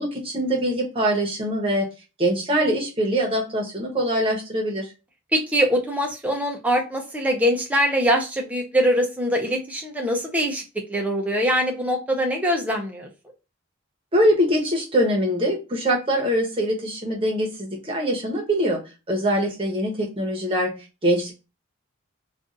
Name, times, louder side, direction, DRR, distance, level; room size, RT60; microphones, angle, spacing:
voice 1, 0.0-1.9 2.2-4.9 14.1-18.8 19.1-20.8 21.0-21.3, equal, 25° right, -2 dB, 0.9 m, -23 dB
voice 2, 5.3-10.6 10.9-13.1, equal, 5° right, 2 dB, 0.5 m, -23 dB
2.6 x 2.5 x 3.7 m, 0.30 s
head